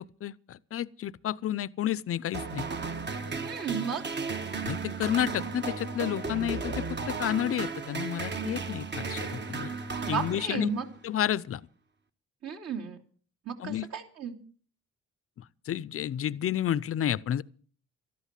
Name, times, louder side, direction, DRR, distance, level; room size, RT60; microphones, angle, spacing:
voice 1, 0.0-2.7 4.6-9.7 10.1-10.7 11.0-11.6 13.6-13.9 15.4-17.4, left 11 dB, 50° left, 0.6 m, -31 dB
sound 1, 2.3-10.9, right 4 dB, 35° right, 1.3 m, -35 dB
voice 2, 3.4-4.0 10.1-10.8 12.4-13.0 13.4-14.4, right 7 dB, 55° right, 2.9 m, -34 dB
13.0 x 11.5 x 7.4 m
cardioid pair, 90°, 30 cm